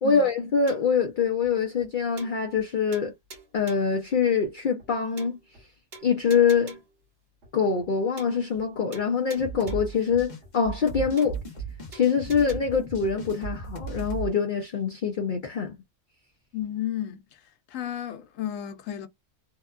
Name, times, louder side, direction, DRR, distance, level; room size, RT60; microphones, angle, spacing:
voice 1, 0.0-3.1 3.5-5.4 6.0-6.8 7.5-11.4 11.9-15.8, left 6 dB, 55° left, 0.6 m, -24 dB
sound 1, 0.7-1.0 1.4-1.5 1.8-1.9 2.2-2.7 2.9-4.0 4.4-4.5 4.8-4.9 5.2-5.6 5.9-7.0 7.4-7.5 7.8-7.9 8.2-8.7 8.9-10.0 10.4-10.5 10.8-10.9 11.2-11.6 11.9-12.6, right 3 dB, 55° right, 1.2 m, -48 dB
sound 2, 9.4-14.3, right 4 dB, 40° left, 1.0 m, -36 dB
voice 2, 16.5-17.4 17.7-19.1, left 11 dB, 85° left, 1.0 m, -33 dB
2.7 x 2.2 x 2.4 m
omnidirectional pair, 1.3 m